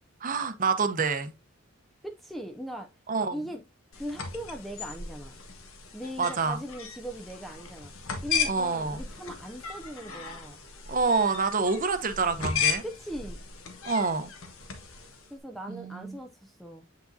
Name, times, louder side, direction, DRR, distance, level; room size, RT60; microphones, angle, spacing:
voice 1, 0.2-1.3 3.1-3.4 6.2-6.6 8.4-9.0 10.9-12.8 13.8-14.3 15.7-16.2, right 4 dB, 40° right, 0.8 m, -27 dB
voice 2, 2.0-2.9 3.3-3.6 3.9-5.4 5.9-7.9 8.2-10.6 12.8-13.4 15.3-16.9, equal, ahead, 0.4 m, -39 dB
sound 1, 3.9-15.3, left 7 dB, 80° left, 1.3 m, -36 dB
7.9 x 4.8 x 2.6 m
head